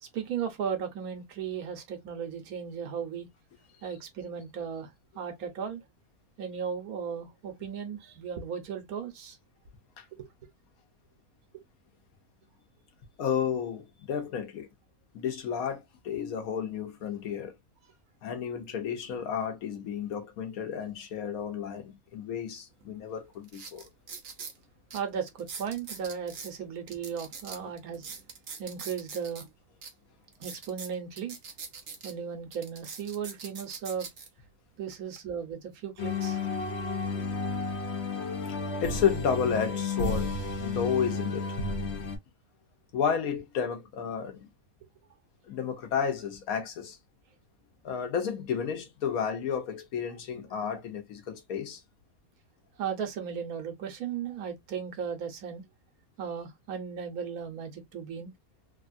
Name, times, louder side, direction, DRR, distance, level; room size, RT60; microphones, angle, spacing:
voice 1, 0.0-3.3 3.8-4.9 5.1-5.8 6.4-9.4 10.2-10.3 24.9-28.1 28.6-29.5 30.4-31.4 32.0-34.1 34.8-36.4 52.8-55.6 56.2-58.3, right 7 dB, 80° right, 1.3 m, -36 dB
voice 2, 13.2-14.7 15.1-17.6 18.2-23.9 38.4-41.6 42.9-44.5 45.5-47.0 47.8-51.8, left 7 dB, 75° left, 1.3 m, -32 dB
sound 1, 22.8-22.9 23.4-24.6 24.9-25.0 25.4-26.5 26.9-29.4 29.8-29.9 30.3-32.1 32.5-34.3 34.9-35.2, right 5 dB, 50° right, 0.9 m, -42 dB
sound 2, 36.0-42.2, left 3 dB, 55° left, 1.0 m, -32 dB
3.4 x 2.3 x 2.5 m
omnidirectional pair, 1.5 m